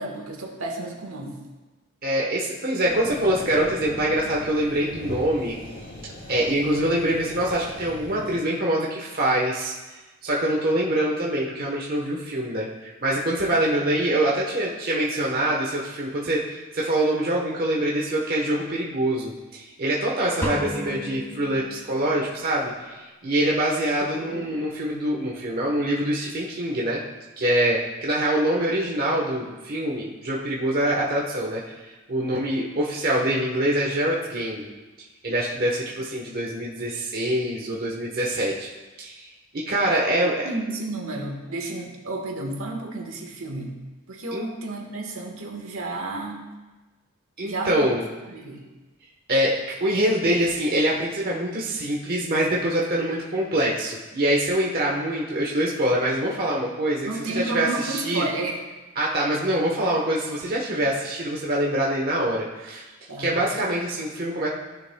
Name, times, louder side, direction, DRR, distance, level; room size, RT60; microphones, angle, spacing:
voice 1, 0.0-1.4 8.1-8.3 24.0-24.6 40.0-43.7 44.1-46.5 47.4-47.9 48.3-48.6 57.0-58.6 63.1-63.3, right 2 dB, 65° right, 1 dB, 1.5 m, -32 dB
voice 2, 2.0-5.6 6.3-9.7 10.2-27.0 27.4-34.7 35.2-38.7 39.0-39.3 39.5-40.5 44.3-44.5 47.4-48.0 49.3-58.2 59.0-62.9 63.2-64.5, right 1 dB, 40° right, -3 dB, 1.1 m, -24 dB
sound 1, 2.9-8.4, left 1 dB, 55° left, 2.1 m, -39 dB
sound 2, 20.4-22.2, equal, 10° left, 1.5 m, -32 dB
15.5 x 6.8 x 2.3 m, 1.2 s
head